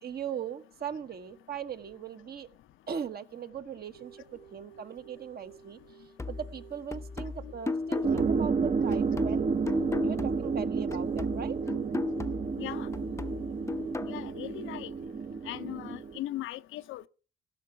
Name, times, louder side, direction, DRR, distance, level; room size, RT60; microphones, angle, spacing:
voice 1, 0.0-2.5 2.9-5.8 6.3-9.5 10.0-11.6, right 7 dB, 50° right, 1.1 m, -39 dB
sound 1, 3.9-14.8, right 9 dB, 85° right, 3.9 m, -55 dB
sound 2, 6.2-10.6 10.9-14.2, left 3 dB, 15° left, 0.6 m, -37 dB
sound 3, 8.0-16.2, right 5 dB, 35° right, 0.6 m, -31 dB
voice 2, 12.6-12.9 14.1-14.9 15.5-17.1, left 15 dB, 80° left, 0.6 m, -38 dB
15.5 x 5.9 x 6.7 m
cardioid pair, 90°, 20 cm